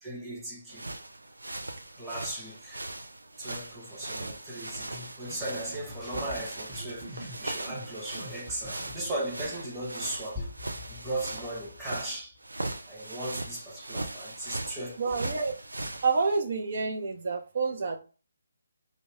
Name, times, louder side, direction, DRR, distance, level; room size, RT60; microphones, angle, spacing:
voice 1, 0.0-0.9 2.0-2.9 3.4-10.5 10.9-12.4 12.9-15.3, right 1 dB, 10° right, 1.0 m, -37 dB
sound 1, 0.7-16.4, right 2 dB, 90° right, 0.5 m, -39 dB
sound 2, 4.7-9.5, equal, 30° right, 1.3 m, -45 dB
voice 2, 15.0-15.5 16.0-18.0, right 4 dB, 55° right, 0.7 m, -28 dB
2.7 x 2.5 x 3.2 m
figure-of-eight pair, 150°, 0 cm